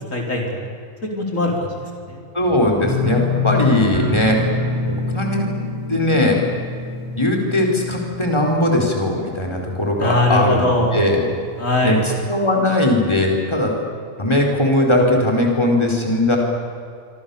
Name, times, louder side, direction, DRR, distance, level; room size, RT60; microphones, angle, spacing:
voice 1, 0.1-0.7 1.1-2.2 10.0-11.0 11.6-12.0, left 1 dB, 70° left, 0 dB, 4.9 m, -21 dB
voice 2, 2.3-4.4 5.1-5.5 5.9-6.4 7.2-11.2 11.8-12.0 12.3-13.7 14.2-16.4, left 1 dB, 20° left, 0 dB, 4.6 m, -19 dB
sound 1, 2.8-9.7 10.0-10.5 10.9-11.0, left 4 dB, 15° right, 3.8 m, -26 dB
26.5 x 26.5 x 7.1 m, 2.4 s
omnidirectional pair, 1.4 m